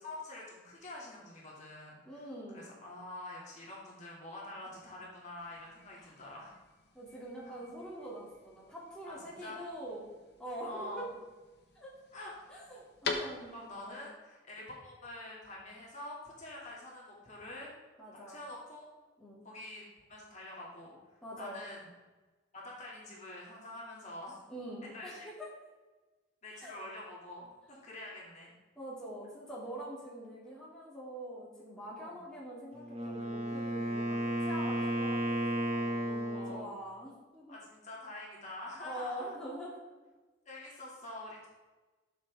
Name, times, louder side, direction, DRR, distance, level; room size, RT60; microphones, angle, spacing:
voice 1, 0.0-2.3 2.5-6.5 7.4-7.6 9.0-9.7 10.6-11.1 12.1-12.5 13.1-17.7 18.2-18.9 19.4-19.8 20.1-21.9 22.5-24.4 24.9-25.3 26.4-28.5 31.9-32.2 36.3-36.7 37.5-39.3 40.5-41.5, left 1 dB, 40° left, -4 dB, 2.6 m, -46 dB
voice 2, 2.0-2.7 6.0-6.1 6.9-10.0 10.4-11.1 11.7-12.0 12.5-14.1 18.0-18.4 19.2-19.4 21.2-21.6 24.5-25.5 26.6-26.8 28.8-37.6 38.8-39.7, right 1 dB, 5° left, -7 dB, 2.7 m, -44 dB
sound 1, 5.4-13.9, left 3 dB, 60° left, 1.4 m, -45 dB
Wind instrument woodwind instrument, 32.8-36.7, right 1 dB, 30° right, 1.8 m, -33 dB
12.5 x 7.2 x 3.7 m, 1.2 s
head